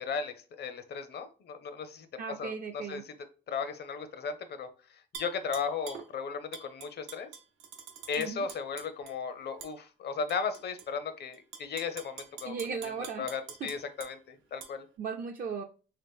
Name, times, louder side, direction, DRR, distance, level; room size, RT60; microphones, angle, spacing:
voice 1, 0.0-2.1 2.4-3.0 3.5-7.3 8.1-12.6 13.0-14.9, left 5 dB, 55° left, 11 dB, 0.6 m, -36 dB
voice 2, 2.2-3.0 8.2-8.5 12.4-13.3 15.0-15.6, right 5 dB, 45° right, 4 dB, 0.4 m, -36 dB
Tap / Glass, 5.1-6.1 6.5-9.1 9.6-9.7 10.3-10.9 11.3-14.1 14.6-14.7, right 7 dB, 80° right, 0.7 m, -46 dB
3.2 x 2.9 x 3.5 m, 0.37 s
cardioid pair, 90°, 20 cm